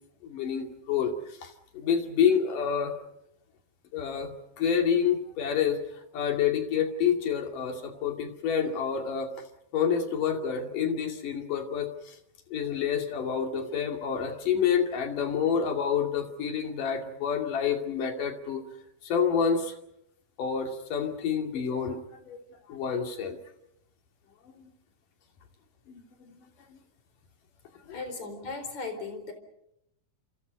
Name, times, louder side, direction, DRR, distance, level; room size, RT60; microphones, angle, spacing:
voice 1, 0.2-1.2 1.4-2.9 3.9-5.8 6.1-9.3 9.7-12.2 12.5-18.6 19.0-19.8 20.4-22.0 22.3-22.4 22.7-23.4 24.6-24.7 25.9-26.4 26.7-26.8 27.9-28.0, left 7 dB, 70° left, 5 dB, 4.1 m, -28 dB
voice 2, 27.9-29.3, left 3 dB, 55° left, 8 dB, 5.4 m, -37 dB
28.5 x 28.5 x 5.4 m, 0.79 s
omnidirectional pair, 4.0 m